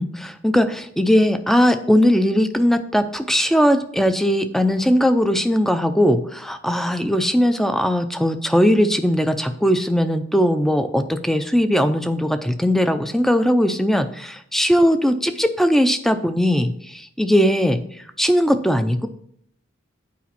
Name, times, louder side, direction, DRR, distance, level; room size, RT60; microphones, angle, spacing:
voice 1, 0.0-17.8 18.2-19.1, equal, ahead, 9 dB, 0.4 m, -19 dB
8.5 x 5.0 x 5.8 m, 0.68 s
head